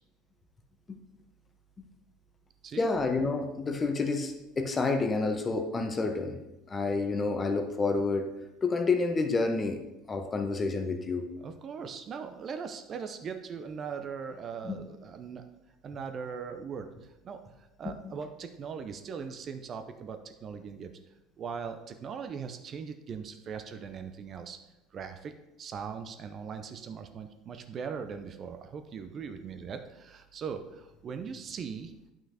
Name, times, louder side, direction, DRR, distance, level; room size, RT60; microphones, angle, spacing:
voice 1, 2.8-6.4 6.7-8.3 8.6-9.8 10.1-11.2 14.6-14.8, left 3 dB, 25° left, 6 dB, 0.9 m, -29 dB
voice 2, 11.4-15.4 15.8-16.9 17.2-20.9 21.4-24.6 24.9-25.3 25.6-31.9, right 6 dB, 40° right, 7 dB, 0.6 m, -40 dB
9.5 x 5.8 x 2.8 m, 0.95 s
hypercardioid pair, 70°, 0 cm